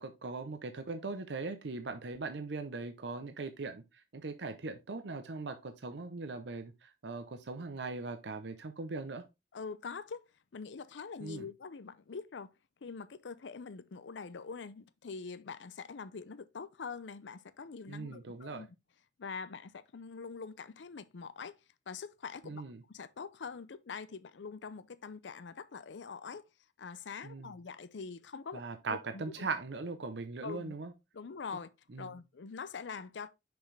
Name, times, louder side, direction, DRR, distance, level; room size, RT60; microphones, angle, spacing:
voice 1, 0.0-9.2 11.2-11.5 17.9-18.7 22.4-22.8 27.2-27.5 28.5-30.9 31.9-32.2, right 3 dB, 75° right, 0.7 m, -40 dB
voice 2, 9.5-12.5 12.8-18.7 19.2-21.6 21.9-22.6 22.9-26.4 26.8-28.6 28.9-29.5 30.4-30.7 31.1-31.7 32.0-33.3, left 5 dB, 85° left, 0.5 m, -44 dB
6.2 x 5.2 x 3.3 m
head